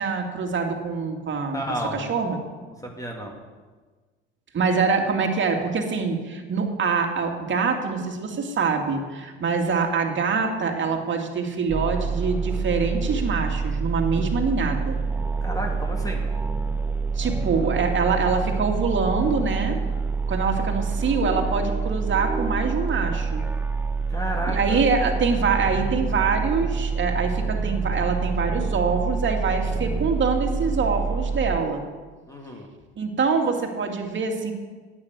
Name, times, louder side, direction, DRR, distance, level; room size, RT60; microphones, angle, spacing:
voice 1, 0.0-1.6 1.9-2.4 4.5-15.0 17.2-19.8 20.3-23.4 24.5-31.8 33.0-34.5, right 5 dB, 40° right, 3 dB, 2.3 m, -25 dB
voice 2, 1.5-2.0 2.8-3.3 15.4-16.3 24.1-24.8 32.3-32.7, equal, 10° left, 1 dB, 2.3 m, -31 dB
sound 1, 11.7-31.6, right 4 dB, 5° right, 0.9 m, -27 dB
9.6 x 8.9 x 8.1 m, 1.4 s
hypercardioid pair, 70°, 31 cm